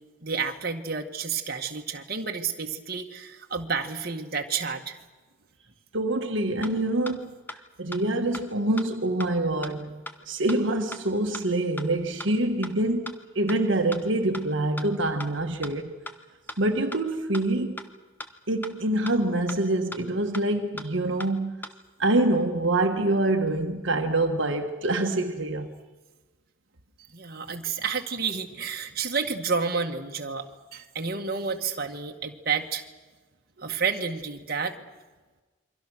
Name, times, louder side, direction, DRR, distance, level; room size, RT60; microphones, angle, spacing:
voice 1, 0.2-5.0 27.1-32.8 33.6-34.8, right 5 dB, 50° right, 1.9 m, -30 dB
voice 2, 5.9-7.3 7.8-15.9 16.6-17.8 18.5-21.5 22.0-25.7, right 2 dB, 65° right, 1.6 m, -26 dB
sound 1, 6.6-6.7 7.1-7.2 7.5-7.6 7.9-8.0 8.3-8.4 8.8-8.9 9.2-9.3 9.6-9.7 10.1-10.2 10.5-10.6 10.9-11.0 11.3-11.4 11.8-11.9 12.2-12.3 12.6-12.7 13.1-13.2 13.5-13.6 13.9-14.0 14.3-14.4 14.8-14.9 15.2-15.3 15.6-15.7 16.1-16.2 16.5-16.6 16.9-17.0 17.3-17.4 17.8-17.9 18.2-18.3 18.6-18.7 19.1-19.2 19.5-19.6 19.9-20.0 20.3-20.4 20.8-20.9 21.2-21.3 21.6-21.7, left 1 dB, 10° left, 1.1 m, -37 dB
28.5 x 24.0 x 6.4 m
head